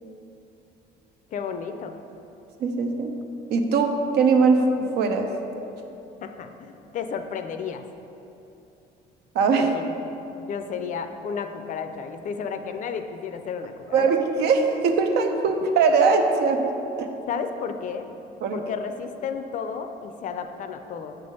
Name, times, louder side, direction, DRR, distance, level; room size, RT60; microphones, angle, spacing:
voice 1, 1.3-1.9 6.2-7.8 9.6-10.0 10.4-14.1 17.3-18.1 18.5-21.2, left 6 dB, 50° left, 7 dB, 0.4 m, -32 dB
voice 2, 2.6-3.1 3.5-5.3 9.3-9.7 13.9-16.6 17.0-17.1 18.4-18.6, right 4 dB, 75° right, 5 dB, 0.6 m, -21 dB
6.4 x 3.4 x 5.3 m, 2.9 s
cardioid pair, 110°, 17 cm